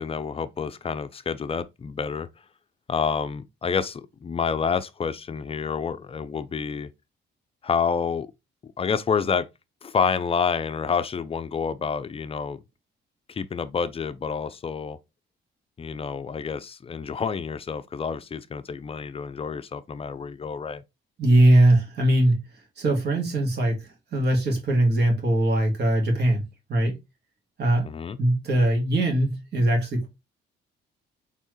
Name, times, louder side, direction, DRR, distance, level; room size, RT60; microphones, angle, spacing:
voice 1, 0.0-2.3 2.9-6.9 7.6-8.3 8.6-9.5 9.8-12.6 13.3-15.0 15.8-20.8 27.8-28.2, left 6 dB, 30° left, 0.5 m, -28 dB
voice 2, 21.2-22.4 22.8-26.4 26.7-27.0 27.6-27.9 28.2-30.1, right 1 dB, 60° right, 1.9 m, -21 dB
4.4 x 3.4 x 3.0 m
cardioid pair, 90°, 20 cm